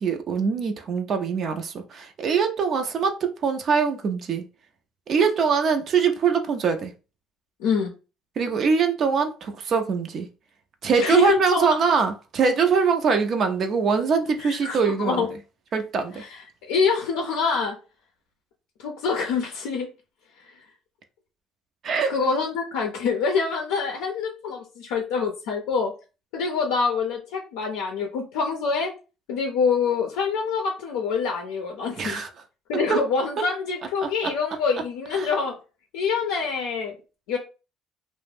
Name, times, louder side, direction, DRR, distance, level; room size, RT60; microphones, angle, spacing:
voice 1, 0.0-4.4 5.1-6.9 8.4-10.3 10.8-15.3 15.7-16.2 21.8-22.1 32.0-32.3 32.9-33.0 34.0-34.3 35.1-35.3, right 5 dB, 50° right, 0.4 m, -23 dB
voice 2, 7.6-7.9 11.0-11.7 14.4-15.3 16.2-16.4 16.7-17.8 18.8-19.9 22.1-25.9 26.3-28.9 29.3-32.2 32.7-35.5 35.9-36.9 37.3-37.4, left 5 dB, 80° left, 0.4 m, -25 dB
2.4 x 2.0 x 3.3 m
supercardioid pair, 75°, 0 cm